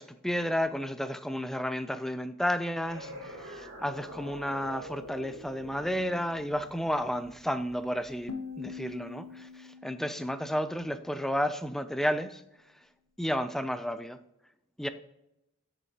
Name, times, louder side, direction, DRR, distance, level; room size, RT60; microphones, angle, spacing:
voice 1, 0.0-12.9 13.2-14.2 14.8-14.9, equal, ahead, 0.3 m, -32 dB
sound 1, 2.8-8.2, equal, 75° right, 2.7 m, -46 dB
sound 2, 8.3-11.3, left 5 dB, 90° left, 0.8 m, -44 dB
7.5 x 6.4 x 2.8 m
head